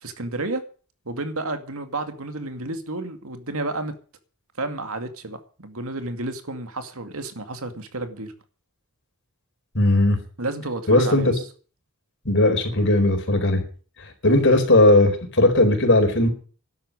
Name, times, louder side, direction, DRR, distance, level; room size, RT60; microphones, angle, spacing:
voice 1, 0.0-0.6 1.1-3.9 4.6-8.3 10.4-11.4, right 2 dB, 75° right, 2.3 m, -31 dB
voice 2, 9.7-10.2 10.9-11.2 12.2-13.6 14.0-16.3, left 2 dB, 55° left, 4.4 m, -18 dB
12.5 x 8.6 x 9.7 m
head